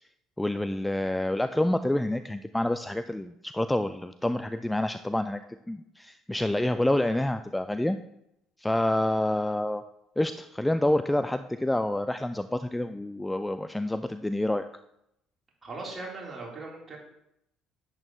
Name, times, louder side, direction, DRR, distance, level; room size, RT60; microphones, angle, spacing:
voice 1, 0.4-5.4 5.7-8.0 8.6-9.8 10.2-14.7, left 1 dB, 10° left, 10 dB, 0.4 m, -28 dB
voice 2, 15.6-17.0, right 3 dB, 30° right, -3 dB, 3.9 m, -39 dB
10.5 x 8.8 x 3.2 m, 0.81 s
figure-of-eight pair, 55°, 0 cm